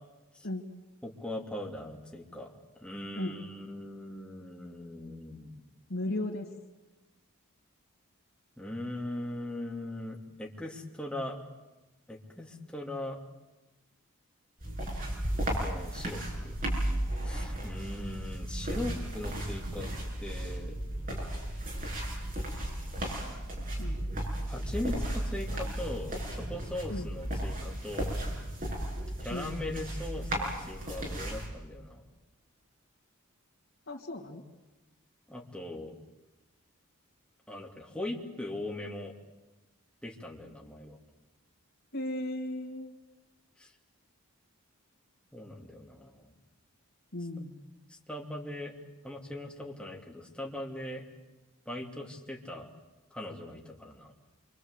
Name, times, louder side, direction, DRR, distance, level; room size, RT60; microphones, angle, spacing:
voice 1, 1.0-2.5 2.8-5.6 8.6-11.4 12.1-13.2 15.6-16.5 17.2-19.9 20.2-20.7 24.5-28.2 29.2-32.0 35.3-35.9 37.5-39.1 40.0-41.0 43.6-43.7 45.3-46.3 47.9-48.7 49.0-51.0 51.7-52.7 53.1-54.1, left 1 dB, 5° left, -1 dB, 3.0 m, -40 dB
voice 2, 5.9-6.5 23.8-24.0 26.9-27.0 29.3-29.5 33.9-34.4 41.9-42.9 47.1-47.6, left 1 dB, 60° left, -6 dB, 3.0 m, -35 dB
sound 1, 14.6-31.5, right 1 dB, 40° right, 6.5 m, -35 dB
28.0 x 25.0 x 8.3 m, 1.1 s
head